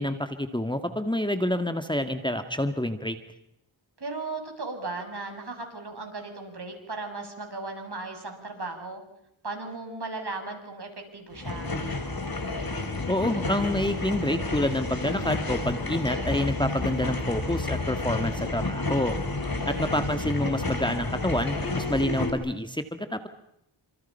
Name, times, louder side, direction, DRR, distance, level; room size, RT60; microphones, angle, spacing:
voice 1, 0.0-3.2 13.1-19.2 19.7-23.3, left 1 dB, 10° left, 8 dB, 2.0 m, -28 dB
voice 2, 4.0-9.0 9.4-11.7 19.5-20.0, right 3 dB, 55° right, 4 dB, 7.4 m, -36 dB
sound 1, 11.3-22.3, left 2 dB, 45° left, 4.9 m, -30 dB
29.5 x 26.5 x 5.7 m, 0.77 s
cardioid pair, 55°, 49 cm